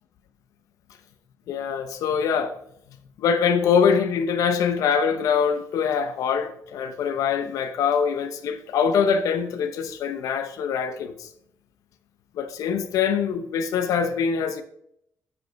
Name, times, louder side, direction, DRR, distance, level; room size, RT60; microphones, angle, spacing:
voice 1, 1.5-2.6 3.2-11.3 12.4-14.6, left 6 dB, 85° left, 0.8 m, -23 dB
9.7 x 5.3 x 4.6 m
cardioid pair, 160°, 6 cm